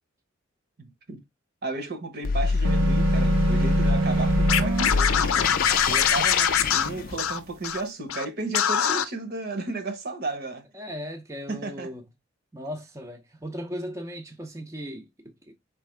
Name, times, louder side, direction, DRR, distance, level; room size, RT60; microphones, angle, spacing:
voice 1, 0.8-1.2 1.6-5.5 5.8-10.6 11.5-11.9, right 2 dB, 50° right, 1.0 m, -34 dB
sound 1, 2.2-7.5, left 4 dB, 45° left, 0.4 m, -26 dB
sound 2, 2.6-4.9, right 2 dB, 85° right, 0.7 m, -24 dB
Scratching (performance technique), 4.5-7.8 8.1-8.2 8.5-9.0, left 8 dB, 90° left, 0.6 m, -23 dB
voice 2, 10.7-12.1 12.5-15.5, equal, 15° right, 0.6 m, -37 dB
4.6 x 3.5 x 3.2 m
head